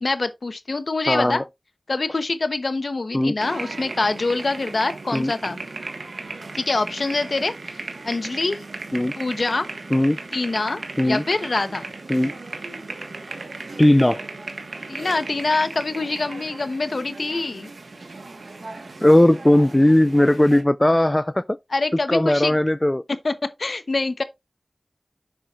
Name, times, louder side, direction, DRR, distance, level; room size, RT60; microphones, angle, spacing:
voice 1, 0.0-1.4 1.9-5.6 6.5-8.6 9.2-9.7 10.3-11.9 14.9-17.7 21.7-22.6 23.2-23.3 23.6-24.2, left 3 dB, 65° left, 0.9 m, -25 dB
voice 2, 1.1-1.4 3.1-3.4 5.1-5.3 8.9-9.1 9.9-10.2 11.0-11.2 12.1-12.3 13.8-14.2 19.0-21.6 22.1-23.0, left 1 dB, 20° left, 0.3 m, -17 dB
sound 1, 3.4-20.6, right 3 dB, 80° right, 1.5 m, -36 dB
7.7 x 5.8 x 2.5 m
wide cardioid pair, 50°, 0 cm